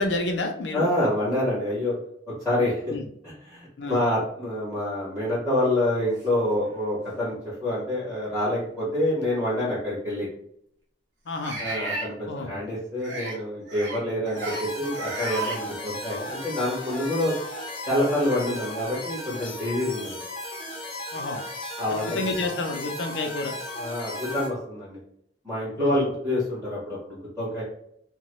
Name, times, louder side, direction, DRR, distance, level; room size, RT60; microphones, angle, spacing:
voice 1, 0.0-0.9 2.9-3.1 3.8-4.0 11.3-11.6 12.3-12.6 21.1-21.4 21.9-23.5 25.8-26.1, left 2 dB, 80° left, 4 dB, 0.5 m, -29 dB
voice 2, 0.7-1.9 2.4-2.9 3.2-7.4 7.6-10.3 11.6-17.3 17.9-20.2 21.8-22.2 23.8-25.0 25.4-27.6, left 1 dB, 10° right, -10 dB, 1.3 m, -27 dB
sound 1, 6.6-6.7 7.5-7.6 9.2-9.3 11.4-12.1 13.0-13.4 13.7-14.0 14.3-14.6 14.9-15.6, right 2 dB, 75° right, 0.9 m, -33 dB
sound 2, 14.4-24.5, left 1 dB, 30° left, 0.6 m, -36 dB
2.9 x 2.1 x 3.0 m, 0.71 s
head